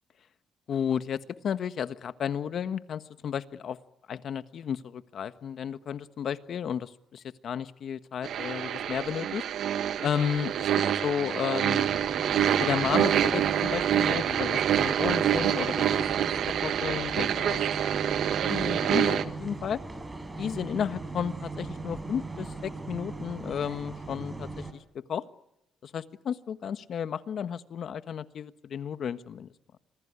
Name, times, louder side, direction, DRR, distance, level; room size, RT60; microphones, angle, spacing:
voice 1, 0.7-3.8 4.1-9.4 10.0-10.7 11.0-11.9 12.6-16.3 16.6-17.7 17.9-19.8 20.4-25.2 25.8-29.5, left 8 dB, 60° left, 11 dB, 1.4 m, -33 dB
sound 1, 8.2-19.2, right 10 dB, 75° right, 1.5 m, -26 dB
sound 2, 11.8-24.7, right 3 dB, 20° right, 4.9 m, -39 dB
26.0 x 20.5 x 9.8 m, 0.87 s
cardioid pair, 90°, 0 cm